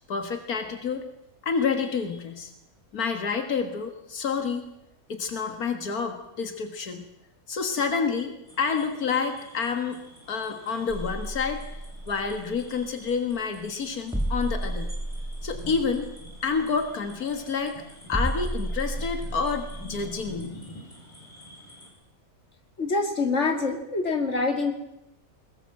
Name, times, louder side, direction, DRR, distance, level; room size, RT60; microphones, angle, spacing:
voice 1, 0.1-1.0 1.4-2.5 2.9-4.7 5.1-7.0 7.5-10.0 10.3-11.6 12.1-14.9 15.4-16.1 16.4-20.8, left 5 dB, 85° left, 6 dB, 2.2 m, -29 dB
sound 1, 8.5-21.9, equal, 25° left, 8.2 m, -48 dB
sound 2, 10.9-20.5, right 1 dB, 5° right, 2.5 m, -33 dB
voice 2, 22.8-24.7, left 3 dB, 50° left, 5 dB, 2.9 m, -25 dB
21.5 x 20.5 x 7.7 m, 0.85 s
omnidirectional pair, 1.5 m